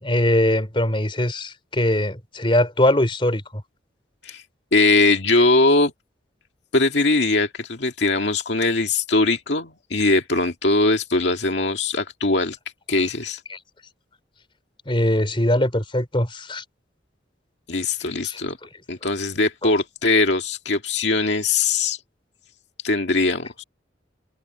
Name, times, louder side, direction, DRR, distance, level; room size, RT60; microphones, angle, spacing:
voice 1, 0.0-3.4 13.5-13.6 14.9-16.6 18.2-18.4 19.0-19.1 19.6-19.7, left 1 dB, 30° left, 4.0 m, -21 dB
voice 2, 4.7-5.9 6.7-12.6 12.9-13.4 17.7-18.6 18.9-22.0 22.8-23.6, left 3 dB, 70° left, 2.0 m, -21 dB
head